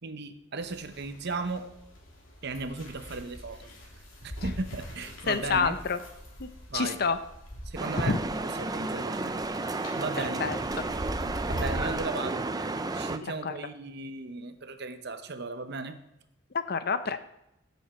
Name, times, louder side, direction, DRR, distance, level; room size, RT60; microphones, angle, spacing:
voice 1, 0.0-1.7 2.4-3.7 4.2-5.8 6.7-7.0 7.6-8.2 8.6-10.5 11.5-12.5 12.9-16.0, right 3 dB, 55° right, 9 dB, 0.9 m, -36 dB
sound 1, 0.6-12.0, equal, 70° left, 3.3 m, -41 dB
voice 2, 5.3-6.0 6.4-7.2 8.1-8.2 10.2-10.6 13.2-13.5 16.5-17.2, left 5 dB, 50° left, 11 dB, 0.7 m, -28 dB
sound 2, 7.8-13.2, right 2 dB, 20° right, 0.5 m, -32 dB
16.0 x 7.3 x 4.3 m, 0.85 s
head